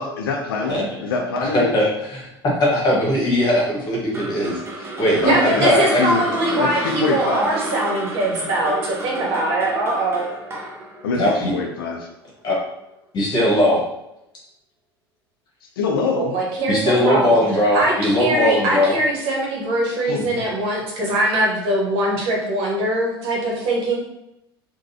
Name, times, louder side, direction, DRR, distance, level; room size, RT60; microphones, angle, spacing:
voice 1, 0.0-1.9 5.2-6.2 6.6-7.5 11.0-12.1 15.8-16.4 20.1-20.5, left 4 dB, 65° left, 2 dB, 0.5 m, -25 dB
voice 2, 1.4-1.9 2.4-5.3 5.6-6.0 11.1-11.5 12.4-12.6 13.1-13.8 16.7-18.9, left 1 dB, 35° left, -4 dB, 1.3 m, -19 dB
sound 1, 4.1-12.3, right 2 dB, 20° right, 0.7 m, -32 dB
voice 3, 5.2-10.3 16.2-16.8 17.0-17.4 17.7-24.0, right 1 dB, 45° right, -2 dB, 1.1 m, -22 dB
3.8 x 2.2 x 2.7 m, 0.86 s
figure-of-eight pair, 75°, 13 cm